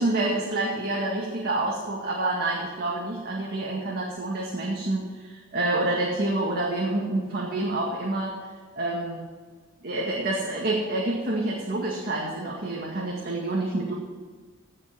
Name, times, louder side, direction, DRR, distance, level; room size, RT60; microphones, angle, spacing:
voice 1, 0.0-8.4 8.8-9.2 9.8-13.9, right 2 dB, 45° right, -3 dB, 2.0 m, -28 dB
16.5 x 5.6 x 7.4 m, 1.5 s
head